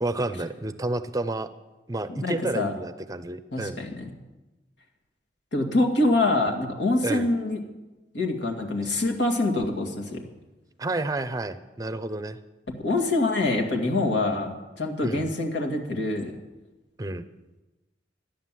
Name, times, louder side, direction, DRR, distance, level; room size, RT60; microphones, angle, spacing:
voice 1, 0.0-1.5 1.9-3.8 7.0-7.3 10.8-12.4 15.0-15.3 17.0-17.2, right 2 dB, 20° right, 13 dB, 0.6 m, -30 dB
voice 2, 2.1-2.7 3.5-4.1 5.5-7.6 8.1-10.2 12.8-16.3, left 2 dB, 85° left, 2 dB, 2.2 m, -25 dB
13.0 x 10.0 x 7.6 m, 1.1 s
head